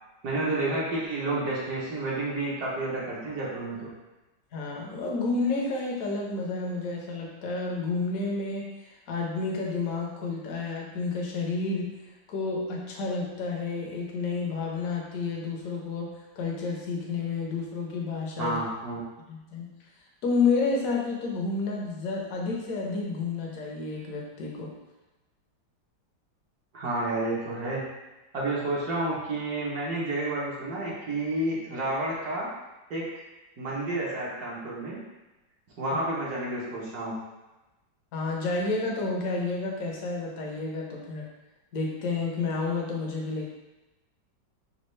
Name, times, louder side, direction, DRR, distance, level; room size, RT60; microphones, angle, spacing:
voice 1, 0.2-3.9 18.4-19.0 26.7-27.8 28.3-32.5 32.9-33.0 33.6-35.0 35.8-37.1, right 2 dB, 60° right, -6 dB, 1.4 m, -30 dB
voice 2, 4.5-12.0 12.3-18.6 19.3-19.8 20.2-24.8 38.1-41.3 41.7-43.5, left 3 dB, 60° left, -1 dB, 1.0 m, -30 dB
5.3 x 2.3 x 3.2 m, 1.1 s
omnidirectional pair, 2.0 m